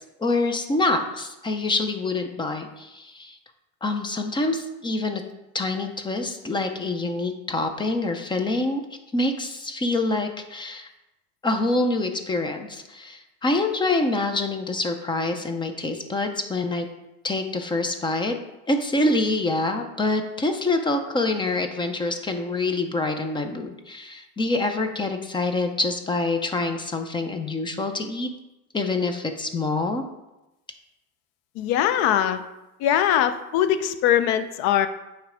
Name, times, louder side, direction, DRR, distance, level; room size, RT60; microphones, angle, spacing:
voice 1, 0.2-3.4 3.8-5.2 5.5-8.8 9.1-10.9 11.4-16.9 17.2-18.4 18.7-28.3 28.7-30.0, left 2 dB, 10° left, 6 dB, 0.4 m, -26 dB
voice 2, 31.6-32.4 32.8-34.9, left 10 dB, 65° left, 11 dB, 0.6 m, -21 dB
9.2 x 3.2 x 4.9 m, 0.98 s
cardioid pair, 145°, 41 cm